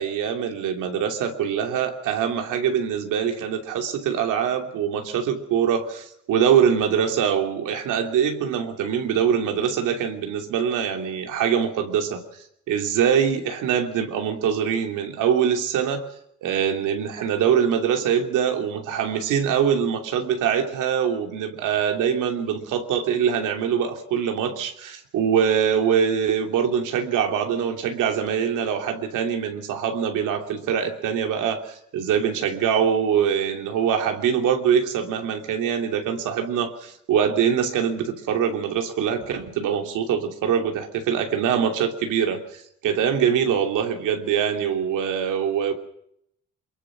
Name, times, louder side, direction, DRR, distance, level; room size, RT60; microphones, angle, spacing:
voice 1, 0.0-12.2 12.7-16.1 16.4-45.7, right 8 dB, 90° right, 4 dB, 3.0 m, -23 dB
24.0 x 22.0 x 6.1 m, 0.75 s
cardioid pair, 90°, 30 cm